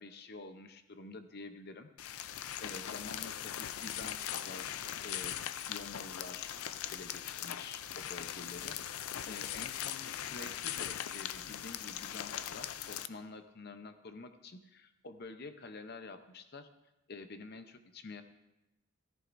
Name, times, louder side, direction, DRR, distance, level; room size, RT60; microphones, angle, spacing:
voice 1, 0.0-5.3 5.7-6.5 6.9-16.7 17.1-18.2, left 3 dB, 45° left, 8 dB, 0.7 m, -48 dB
sound 1, 2.0-13.1, left 10 dB, 80° left, 0.4 m, -40 dB
14.5 x 14.0 x 2.6 m, 0.95 s
head